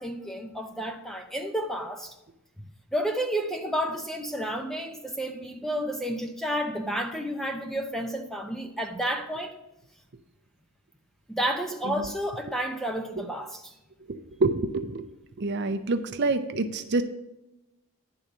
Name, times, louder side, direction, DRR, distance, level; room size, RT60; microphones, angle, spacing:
voice 1, 0.0-2.1 2.6-9.6 11.3-13.7, equal, ahead, 0.6 m, -31 dB
voice 2, 14.1-15.0 15.4-17.0, right 3 dB, 50° right, 0.6 m, -27 dB
10.5 x 4.0 x 7.3 m
head